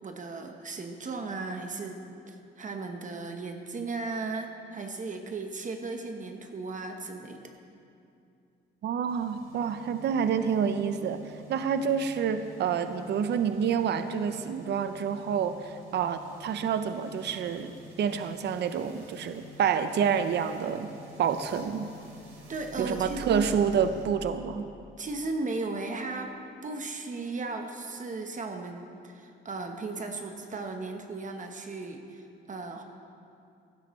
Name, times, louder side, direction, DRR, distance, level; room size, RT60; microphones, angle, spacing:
voice 1, 0.0-2.0 2.3-7.4 22.5-23.5 25.0-26.3 26.6-32.8, right 3 dB, 40° right, 4 dB, 1.0 m, -36 dB
voice 2, 8.8-11.2 11.5-20.9 21.2-21.9 22.8-24.7, right 7 dB, 60° right, 10 dB, 0.6 m, -28 dB
sound 1, 9.1-24.1, right 1 dB, 85° right, 2.7 m, -48 dB
16.0 x 11.0 x 3.1 m, 2.5 s
cardioid pair, 90°, 20 cm